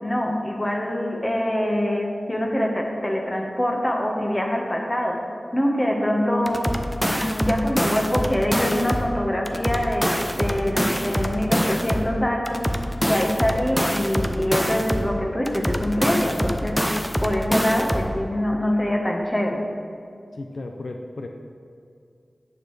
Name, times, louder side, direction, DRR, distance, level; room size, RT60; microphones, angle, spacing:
voice 1, 0.0-5.2 5.5-6.7 7.0-12.7 13.0-16.8 17.2-19.6, equal, 20° left, 1 dB, 1.1 m, -24 dB
sound 1, 6.5-9.1 9.5-12.1 12.5-15.1 15.5-18.1, equal, ahead, 0.5 m, -25 dB
voice 2, 20.3-21.3, left 2 dB, 70° left, 3 dB, 0.5 m, -34 dB
9.7 x 6.6 x 3.2 m, 2.4 s
wide cardioid pair, 75°, 0 cm